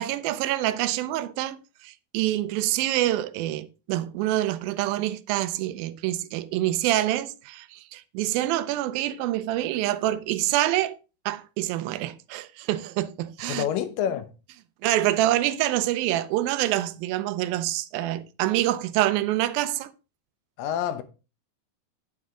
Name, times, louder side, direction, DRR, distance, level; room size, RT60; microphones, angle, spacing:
voice 1, 0.0-11.0 11.3-13.6 14.8-19.9, right 14 dB, 80° right, 2.4 m, -26 dB
voice 2, 13.5-14.3 20.6-21.0, left 9 dB, 75° left, 2.4 m, -27 dB
9.7 x 7.2 x 3.7 m
omnidirectional pair, 4.2 m